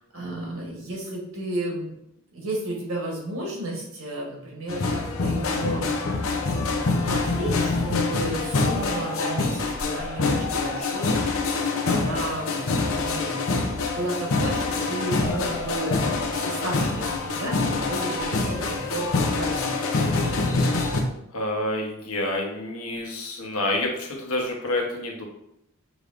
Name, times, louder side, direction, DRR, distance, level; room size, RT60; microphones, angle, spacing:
voice 1, 0.0-1.9 2.3-5.8 6.5-6.7 7.0-11.4 11.7-19.9, right 1 dB, 75° right, -2 dB, 1.4 m, -33 dB
sound 1, 4.7-21.0, left 3 dB, 70° left, 0.7 m, -25 dB
voice 2, 21.3-25.2, left 1 dB, 90° left, 0 dB, 1.1 m, -28 dB
6.0 x 3.4 x 2.5 m, 0.79 s
head